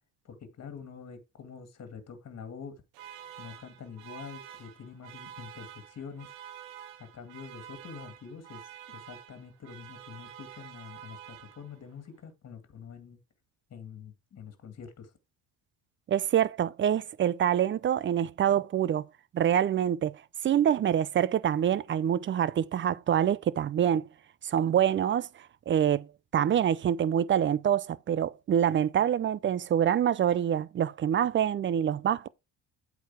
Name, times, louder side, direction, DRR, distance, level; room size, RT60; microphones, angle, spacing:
voice 1, 0.2-2.8 3.4-6.3 7.0-13.2 13.7-15.1, left 6 dB, 35° left, 2.1 m, -46 dB
sound 1, 2.9-12.0, right 10 dB, 90° right, 1.2 m, -48 dB
voice 2, 16.1-19.1 19.3-20.2 20.4-24.1 24.4-25.3 25.7-26.1 26.3-32.3, right 9 dB, 30° right, 0.4 m, -26 dB
8.2 x 4.6 x 4.6 m
cardioid pair, 120°, 43 cm